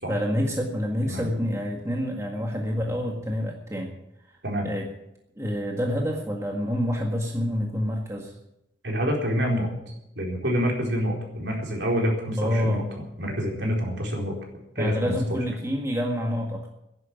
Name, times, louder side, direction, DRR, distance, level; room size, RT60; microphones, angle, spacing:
voice 1, 0.1-3.9 4.6-4.9 5.4-8.3 12.4-12.9 14.8-16.7, equal, 15° right, 0 dB, 1.8 m, -27 dB
voice 2, 8.8-9.7 10.2-12.8 13.2-14.4 14.8-15.2, equal, 65° right, 0 dB, 4.3 m, -27 dB
11.5 x 11.0 x 9.3 m, 0.84 s
head